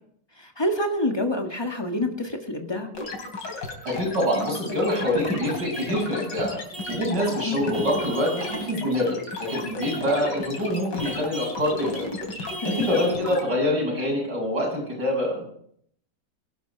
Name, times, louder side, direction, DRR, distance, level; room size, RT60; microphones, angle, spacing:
voice 1, 0.4-2.9 7.4-7.6 12.6-12.9, left 1 dB, 15° left, 3 dB, 2.0 m, -27 dB
sound 1, 2.9-13.4, left 2 dB, 90° left, 3.8 m, -34 dB
voice 2, 3.8-6.6 6.9-12.0 12.6-15.4, left 1 dB, 85° right, -1 dB, 8.2 m, -25 dB
Vehicle horn car horn honking / Truck, 5.7-6.0 6.7-7.1 7.7-8.7 9.5-10.1 11.0-11.6 12.5-13.2, right 1 dB, 30° right, 4.6 m, -37 dB
21.0 x 11.5 x 4.8 m, 0.66 s
omnidirectional pair, 1.8 m